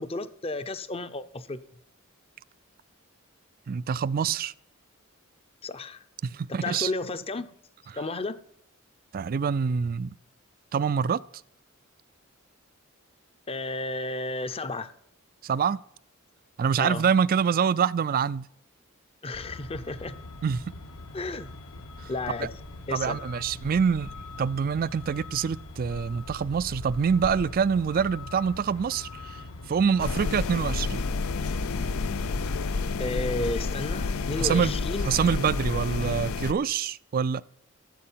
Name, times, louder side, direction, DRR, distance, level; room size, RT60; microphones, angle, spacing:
voice 1, 0.0-1.6 5.6-6.0 6.5-7.5 7.9-8.4 13.5-14.9 16.8-17.0 19.2-20.1 21.1-21.5 22.1-22.5 22.9-23.2 33.0-35.2, left 2 dB, 30° left, 0.7 m, -32 dB
voice 2, 3.7-4.5 6.2-6.9 9.1-10.1 10.7-11.2 15.4-15.8 16.6-18.5 20.4-20.6 22.0-22.1 22.4-22.5 22.9-29.4 29.7-31.0 34.4-34.8 35.0-37.4, right 6 dB, 45° right, 0.4 m, -26 dB
Truck, 19.3-32.7, left 2 dB, 75° left, 1.3 m, -42 dB
sound 1, 30.0-36.5, left 4 dB, 90° left, 0.6 m, -29 dB
14.0 x 7.6 x 5.7 m
head